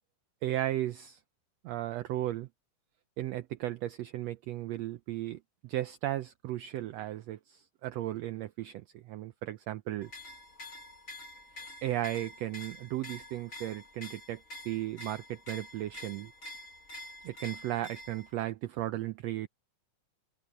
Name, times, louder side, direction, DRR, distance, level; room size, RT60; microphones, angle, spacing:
voice 1, 0.4-1.2 1.6-2.5 3.2-10.1 11.5-16.3 17.2-19.5, right 14 dB, 90° right, 1.4 m, -35 dB
sound 1, 10.0-18.3, left 1 dB, 30° left, 2.0 m, -47 dB
omnidirectional pair, 3.7 m